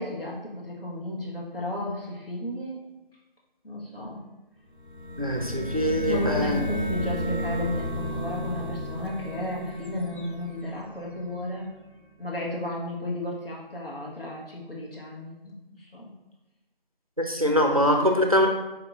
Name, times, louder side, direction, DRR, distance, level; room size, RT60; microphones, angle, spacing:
voice 1, 0.0-2.8 3.6-4.2 6.1-11.7 12.2-16.1, left 1 dB, 75° left, -3 dB, 1.3 m, -33 dB
sound 1, 4.8-11.5, equal, 60° left, 0.6 m, -32 dB
voice 2, 5.2-6.6 17.3-18.5, equal, 40° right, 2 dB, 0.4 m, -23 dB
4.7 x 2.5 x 3.6 m, 1.0 s
figure-of-eight pair, 175°, 29 cm